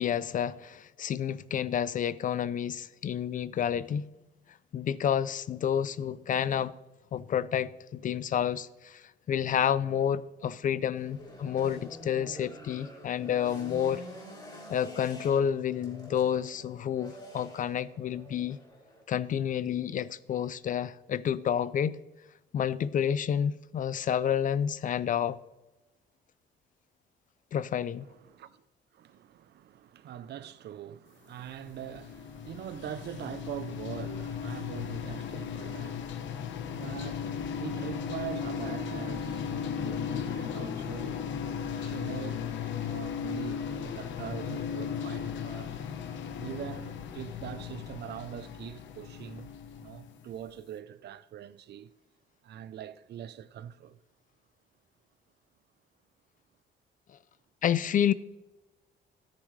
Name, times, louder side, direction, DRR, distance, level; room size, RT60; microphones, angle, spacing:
voice 1, 0.0-4.1 4.7-6.7 7.1-14.0 14.7-18.6 19.1-22.0 22.5-25.4 27.5-28.1 57.6-58.1, left 9 dB, 45° left, 0.4 m, -29 dB
sound 1, 10.9-19.0, left 1 dB, 25° left, 3.7 m, -47 dB
voice 2, 28.0-28.6 28.9-41.3 41.7-42.5 42.8-45.8 46.4-49.5 49.8-51.9 52.4-54.0, right 10 dB, 60° right, 0.6 m, -43 dB
sound 2, 31.4-50.4, left 7 dB, 80° left, 1.1 m, -36 dB
13.5 x 9.7 x 3.2 m
cardioid pair, 145°, 19 cm